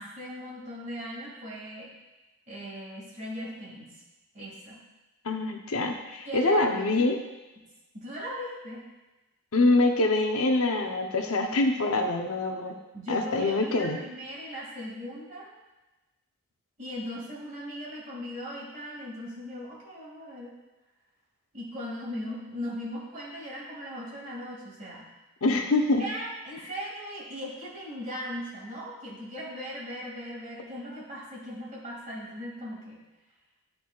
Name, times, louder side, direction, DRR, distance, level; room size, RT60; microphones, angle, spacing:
voice 1, 0.0-1.9 2.5-3.9 4.3-4.8 6.3-7.1 7.6-7.7 7.9-8.8 12.9-15.6 16.8-20.5 21.5-25.1 26.0-33.0, equal, 35° right, -6 dB, 2.0 m, -38 dB
voice 2, 5.2-7.2 9.5-12.7 13.1-14.0 25.4-26.0, left 2 dB, 70° left, 4 dB, 0.7 m, -25 dB
11.5 x 3.9 x 2.3 m, 1.1 s
head